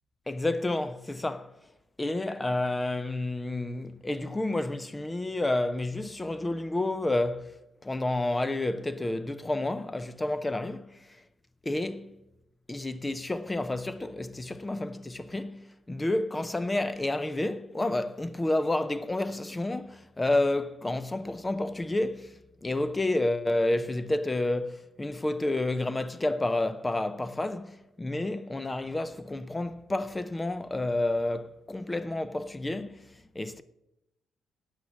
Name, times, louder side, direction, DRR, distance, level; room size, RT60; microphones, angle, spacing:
voice 1, 0.3-1.5 2.0-11.2 11.6-12.2 12.7-33.6, left 2 dB, 10° left, 0.5 m, -30 dB
12.5 x 8.1 x 7.2 m
cardioid pair, 155°, 0 cm